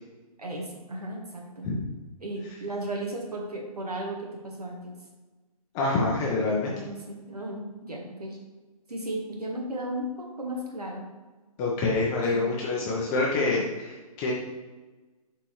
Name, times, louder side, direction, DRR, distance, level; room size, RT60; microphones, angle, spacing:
voice 1, 0.4-1.7 2.2-4.9 6.4-8.4 8.9-10.1 10.4-11.1 12.2-12.5 12.9-13.1 13.5-13.6, right 1 dB, 85° right, 0 dB, 1.6 m, -35 dB
voice 2, 5.7-6.7 11.6-14.3, left 3 dB, 25° left, -4 dB, 1.0 m, -26 dB
8.4 x 4.5 x 3.2 m, 1.2 s
figure-of-eight pair, 130°, 19 cm